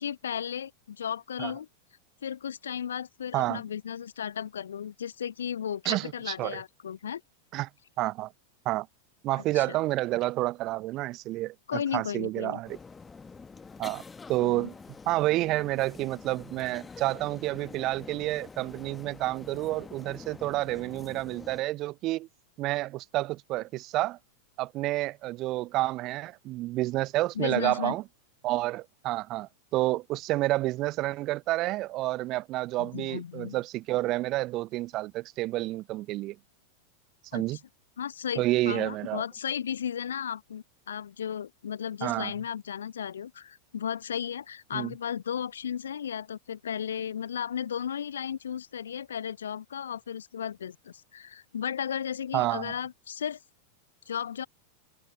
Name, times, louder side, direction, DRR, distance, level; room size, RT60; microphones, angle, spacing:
voice 1, 0.0-1.7 2.2-7.2 9.5-9.6 11.7-12.6 14.4-14.7 27.4-28.0 32.8-33.6 37.3-37.6 38.0-53.4 54.1-54.5, left 8 dB, 65° left, 0.3 m, -35 dB
voice 2, 5.8-6.6 7.5-7.7 8.0-8.3 8.6-8.9 9.2-12.8 13.8-14.0 14.3-14.7 15.1-22.3 22.6-24.2 24.6-28.0 28.4-36.4 37.3-37.6 38.3-39.2 42.0-42.3 44.7-44.9 52.3-52.7, right 17 dB, 35° right, 0.8 m, -29 dB
sound 1, 12.6-21.6, left 4 dB, 15° left, 1.2 m, -47 dB
figure-of-eight pair, 90°, 0 cm